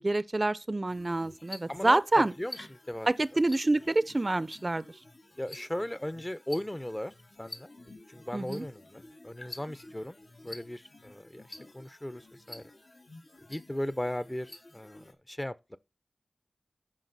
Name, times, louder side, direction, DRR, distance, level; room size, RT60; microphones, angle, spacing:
voice 1, 0.0-2.3 3.1-4.8 8.3-8.7, right 2 dB, 40° right, 0.5 m, -27 dB
sound 1, 0.9-15.1, left 2 dB, 65° left, 1.9 m, -50 dB
voice 2, 1.7-2.6 2.9-3.1 5.4-7.1 7.4-7.7 8.1-10.2 10.4-11.4 11.7-12.2 12.5-12.6 13.5-15.8, left 1 dB, 20° left, 0.8 m, -37 dB
12.5 x 5.1 x 4.1 m
cardioid pair, 40°, 0 cm